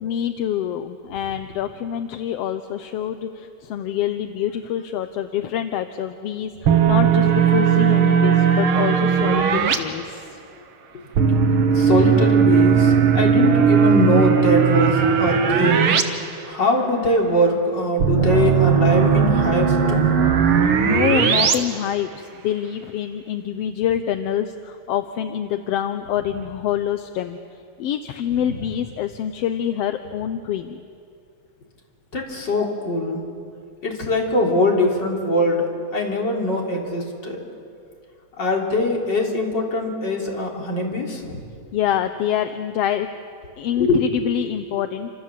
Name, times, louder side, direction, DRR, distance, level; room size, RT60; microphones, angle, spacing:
voice 1, 0.0-10.4 20.6-27.4 27.8-30.8 41.7-43.1 43.6-45.1, left 10 dB, 70° left, 9 dB, 1.7 m, -26 dB
sound 1, 6.7-9.8 11.2-16.0 16.3-16.4 18.0-21.6, right 7 dB, 55° right, 2.1 m, -17 dB
voice 2, 11.7-15.9 16.4-20.3 32.1-33.2 33.8-37.4 38.4-41.4 43.8-44.0, left 1 dB, 35° left, 0 dB, 4.1 m, -22 dB
29.0 x 26.5 x 7.5 m, 2.4 s
omnidirectional pair, 3.3 m